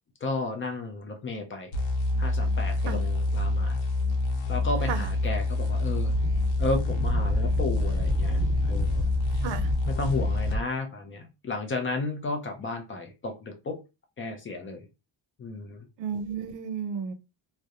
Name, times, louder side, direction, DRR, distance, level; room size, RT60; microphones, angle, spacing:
voice 1, 0.2-1.7 2.2-3.8 4.5-6.2 6.6-9.0 9.9-13.8 14.2-14.9 15.4-15.9, left 3 dB, 30° left, 0.4 m, -33 dB
sound 1, 1.7-10.6, left 2 dB, 80° left, 0.8 m, -27 dB
Wind, 5.9-10.6, right 1 dB, 10° left, 1.1 m, -33 dB
voice 2, 16.0-17.1, right 7 dB, 80° right, 0.5 m, -33 dB
2.4 x 2.1 x 2.7 m
cardioid pair, 155°, 44 cm